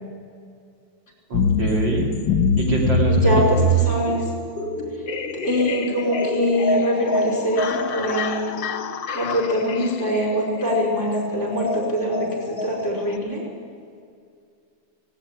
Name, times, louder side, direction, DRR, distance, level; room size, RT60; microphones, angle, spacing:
sound 1, 1.3-13.2, left 1 dB, 65° left, 2.0 m, -25 dB
voice 1, 1.3-2.1 2.6-3.7, right 2 dB, 60° right, -1 dB, 3.8 m, -24 dB
voice 2, 3.1-4.2 5.3-8.5 9.1-13.4, equal, 35° left, 0 dB, 5.3 m, -23 dB
17.5 x 17.0 x 9.9 m, 2.3 s
omnidirectional pair, 2.2 m